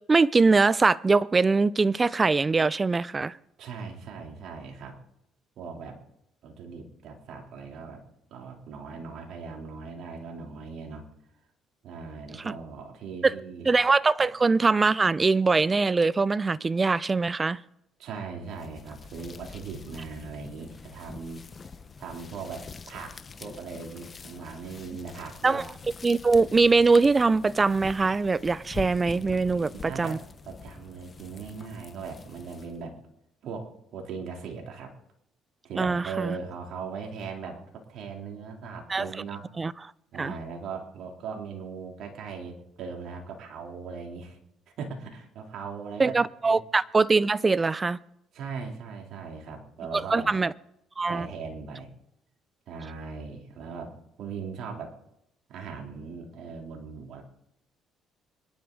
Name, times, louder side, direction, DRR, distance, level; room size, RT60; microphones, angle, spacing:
voice 1, 0.1-3.4 12.4-12.5 13.2-13.3 13.7-17.6 25.4-25.7 26.0-30.2 35.8-36.4 38.9-39.1 39.6-39.7 40.2-40.3 46.0-48.0 49.9-50.5 51.0-51.3, right 4 dB, 25° right, 0.5 m, -22 dB
voice 2, 3.6-4.9 5.6-6.0 6.4-8.0 8.3-11.0 11.8-13.7 14.2-14.3 18.0-21.4 22.0-25.6 29.4-32.9 33.4-34.9 35.6-39.5 40.1-44.4 44.8-46.1 46.4-46.6 48.3-50.3 51.1-51.9 52.7-53.9 54.2-54.9 55.5-57.2, right 5 dB, 65° right, 3.2 m, -39 dB
sound 1, 18.4-32.9, left 5 dB, 35° left, 1.0 m, -45 dB
25.0 x 11.0 x 3.9 m
supercardioid pair, 80°, 0 cm